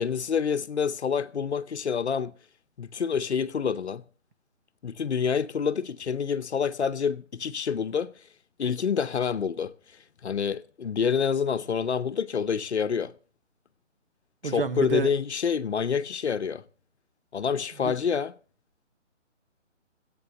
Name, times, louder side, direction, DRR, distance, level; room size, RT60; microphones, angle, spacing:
voice 1, 0.0-2.3 2.8-4.0 4.8-8.1 8.6-9.7 10.2-13.1 14.4-16.6 17.3-18.3, left 6 dB, 60° left, 0.9 m, -27 dB
voice 2, 14.4-15.1 17.8-17.9, right 3 dB, 45° right, 1.0 m, -29 dB
13.5 x 8.8 x 6.9 m
hypercardioid pair, 160°, 38 cm